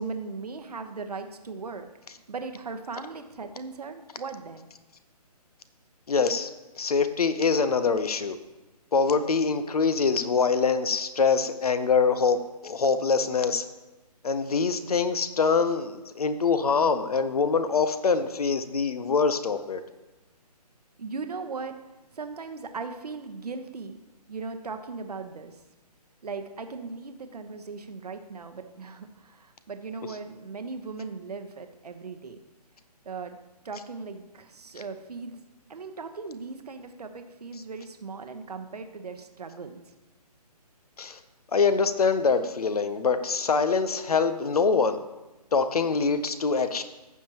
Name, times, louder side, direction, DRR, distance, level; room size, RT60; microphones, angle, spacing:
voice 1, 0.0-1.9 2.3-4.7 21.0-21.8 22.1-24.0 24.3-25.6 26.2-32.4 33.0-33.4 33.6-35.4 35.7-39.8, right 4 dB, 70° right, 7 dB, 1.0 m, -38 dB
voice 2, 6.1-6.5 6.8-8.4 8.9-13.6 14.2-19.8 41.0-41.2 41.5-45.0 45.5-46.8, left 5 dB, 65° left, 11 dB, 0.7 m, -24 dB
15.0 x 5.7 x 2.9 m, 1.1 s
figure-of-eight pair, 145°, 21 cm